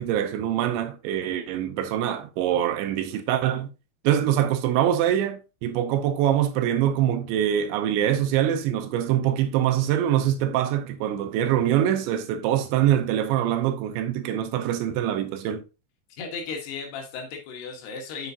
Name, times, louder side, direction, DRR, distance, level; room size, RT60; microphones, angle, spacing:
voice 1, 0.0-3.7 4.0-15.6, right 11 dB, 80° right, 2.9 m, -24 dB
voice 2, 16.1-18.3, left 5 dB, 70° left, 3.1 m, -35 dB
7.6 x 7.1 x 2.7 m
omnidirectional pair, 5.5 m